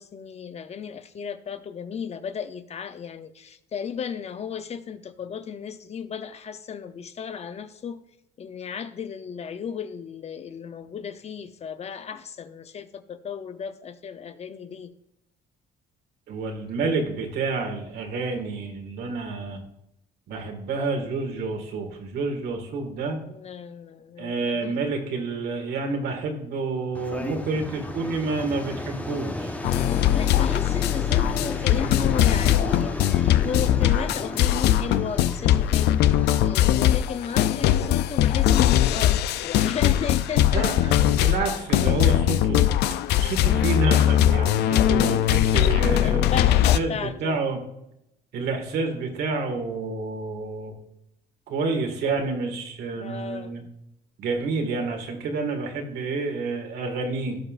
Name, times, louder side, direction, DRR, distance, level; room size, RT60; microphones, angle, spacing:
voice 1, 0.0-8.0 8.4-14.9 23.2-24.8 29.7-40.7 42.1-42.2 46.0-47.4 52.9-53.7, left 7 dB, 40° left, 0.7 m, -34 dB
voice 2, 16.3-19.6 20.3-23.2 24.2-29.6 40.5-42.6 43.2-47.6 48.3-50.7 51.5-53.6 54.2-57.4, right 3 dB, 70° right, 2.1 m, -29 dB
sound 1, 26.9-41.6, left 1 dB, 10° left, 1.0 m, -36 dB
sound 2, 29.6-46.8, left 12 dB, 80° left, 0.4 m, -21 dB
16.5 x 5.6 x 2.5 m
cardioid pair, 110°, 17 cm